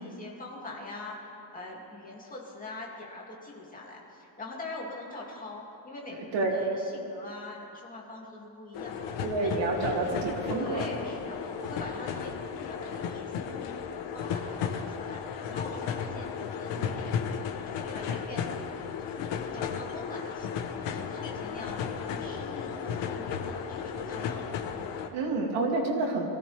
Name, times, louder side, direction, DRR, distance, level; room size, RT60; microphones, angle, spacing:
voice 1, 0.0-9.1 9.4-9.7 10.5-12.3 12.7-17.1 17.7-25.0, left 2 dB, 20° left, -3 dB, 2.6 m, -43 dB
sound 1, 8.7-25.1, left 7 dB, 90° left, 1.2 m, -34 dB
voice 2, 9.2-10.9 25.1-26.3, right 2 dB, 75° right, -2 dB, 2.9 m, -28 dB
23.5 x 16.0 x 3.5 m, 2.7 s
cardioid pair, 160°, 42 cm